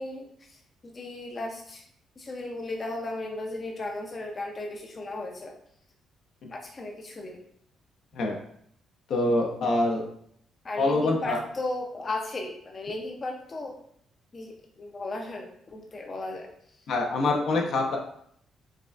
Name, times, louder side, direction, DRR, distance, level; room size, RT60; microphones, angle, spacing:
voice 1, 0.0-1.8 2.2-5.5 6.5-7.4 10.6-13.7 14.3-16.8, left 2 dB, 35° left, 2 dB, 0.5 m, -36 dB
voice 2, 9.1-10.1 10.8-11.4 16.9-18.0, left 2 dB, 70° left, 1 dB, 0.7 m, -25 dB
4.8 x 2.3 x 2.4 m, 0.67 s
cardioid pair, 90°, 0 cm